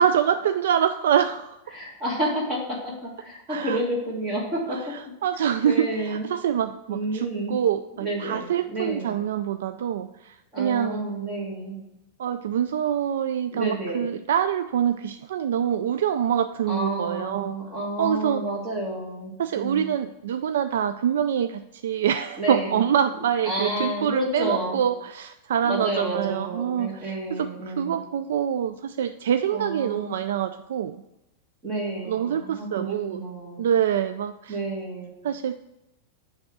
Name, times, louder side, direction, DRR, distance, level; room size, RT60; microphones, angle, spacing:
voice 1, 0.0-1.6 3.5-3.8 4.7-11.1 12.2-17.6 18.0-18.4 19.4-31.0 32.0-33.2 33.6-34.6 35.2-35.5, right 9 dB, 90° right, 9 dB, 0.3 m, -25 dB
voice 2, 1.7-4.9 5.6-6.3 6.9-7.6 8.0-9.1 10.5-11.8 13.5-14.0 16.7-19.9 22.4-22.8 23.4-24.8 25.6-28.0 29.5-30.1 31.6-33.6 34.5-35.1, right 1 dB, 20° right, -3 dB, 1.4 m, -30 dB
7.8 x 3.5 x 6.1 m, 0.91 s
supercardioid pair, 170°, 0 cm